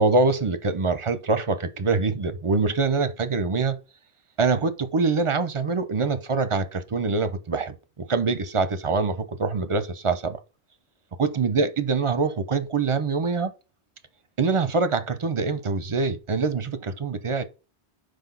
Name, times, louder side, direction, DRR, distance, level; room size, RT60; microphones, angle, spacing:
voice 1, 0.0-3.8 4.4-10.4 11.2-13.5 14.4-17.4, right 4 dB, 35° right, 0.7 m, -24 dB
6.0 x 5.1 x 3.9 m
omnidirectional pair, 1.1 m